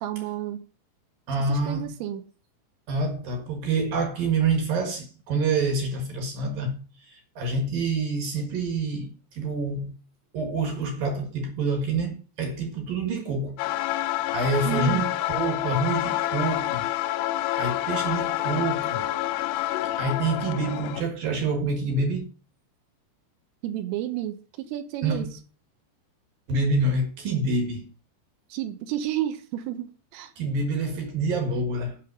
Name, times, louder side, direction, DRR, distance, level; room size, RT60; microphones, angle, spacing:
voice 1, 0.0-0.6 1.5-2.3 14.6-15.1 23.6-25.4 28.5-30.3, right 12 dB, 85° right, 3.6 m, -31 dB
voice 2, 1.3-1.9 2.9-6.8 7.1-9.9 10.3-13.6 14.3-16.9 17.6-19.1 20.0-22.3 25.0-25.3 26.5-27.9 30.4-32.0, right 3 dB, 60° right, 2.6 m, -27 dB
sound 1, 13.6-21.0, left 15 dB, 85° left, 3.2 m, -28 dB
8.7 x 5.7 x 8.1 m
omnidirectional pair, 5.9 m